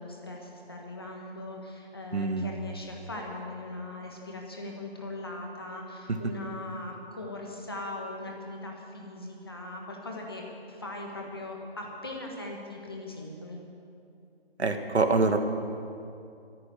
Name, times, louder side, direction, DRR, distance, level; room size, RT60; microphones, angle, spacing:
voice 1, 0.0-13.6, left 2 dB, 20° left, 0 dB, 1.5 m, -40 dB
voice 2, 2.1-2.5 14.6-15.4, right 3 dB, 80° right, 6 dB, 1.8 m, -25 dB
14.5 x 9.5 x 9.7 m, 2.5 s
figure-of-eight pair, 180°, 32 cm